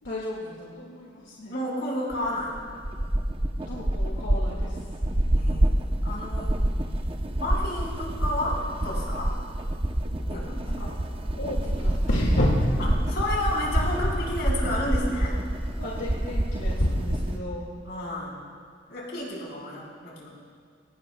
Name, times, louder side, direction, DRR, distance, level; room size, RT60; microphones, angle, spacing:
voice 1, 0.0-1.6 3.7-4.9 10.7-12.7 15.8-17.7, equal, 85° left, -4 dB, 2.0 m, -30 dB
voice 2, 1.5-2.6 5.2-6.6 7.4-9.3 10.3-10.9 12.8-15.4 17.8-18.4 18.9-20.3, left 1 dB, 65° left, -3 dB, 4.4 m, -31 dB
sound 1, 2.1-17.4, right 1 dB, 30° right, 0.7 m, -27 dB
22.5 x 18.5 x 2.2 m, 2.1 s
head